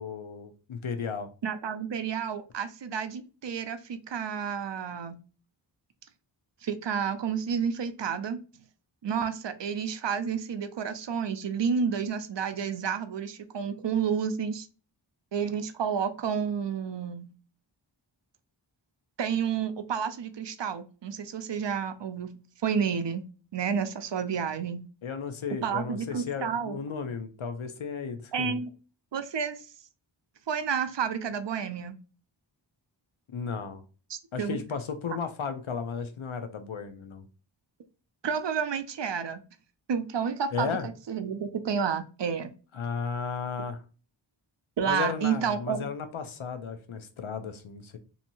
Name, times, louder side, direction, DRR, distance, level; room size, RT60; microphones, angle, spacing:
voice 1, 0.0-1.3 25.0-28.6 33.3-33.8 34.3-37.3 40.5-40.9 42.7-43.8 44.9-48.0, left 6 dB, 90° left, 0.6 m, -34 dB
voice 2, 1.4-5.2 6.6-8.4 9.0-14.7 15.3-17.3 19.2-22.3 22.6-23.3 23.5-24.8 25.5-26.8 28.3-28.7 29.1-29.6 30.5-31.9 34.1-34.6 38.2-39.4 39.9-42.5 44.8-45.9, right 7 dB, 65° right, 0.5 m, -30 dB
2.7 x 2.6 x 2.7 m
wide cardioid pair, 40°, 47 cm